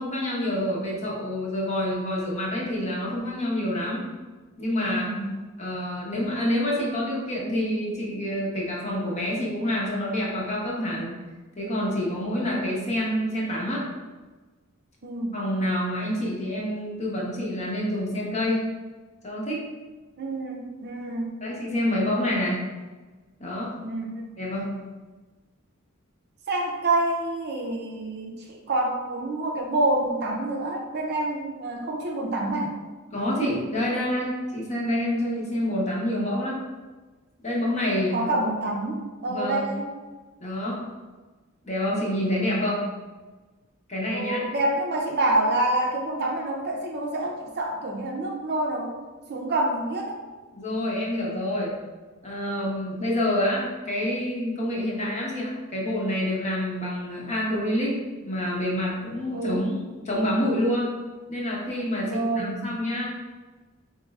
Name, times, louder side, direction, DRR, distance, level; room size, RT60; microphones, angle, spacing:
voice 1, 0.0-4.0 4.6-5.1 5.6-11.2 11.6-13.8 15.3-18.6 19.2-19.7 21.4-22.6 23.4-23.8 24.4-24.8 33.1-36.6 37.4-38.2 39.3-39.7 40.4-40.8 41.6-42.8 43.9-44.4 50.5-51.7 52.2-58.0 58.2-60.9 61.3-63.1, left 1 dB, 35° left, -4 dB, 0.9 m, -27 dB
voice 2, 4.9-5.4 15.0-15.4 20.2-21.3 23.8-24.2 26.5-32.7 38.1-39.9 44.1-48.9 49.3-50.2 59.3-59.7 62.0-62.7, right 2 dB, 50° right, 0 dB, 0.5 m, -27 dB
4.5 x 3.1 x 2.3 m, 1.3 s
head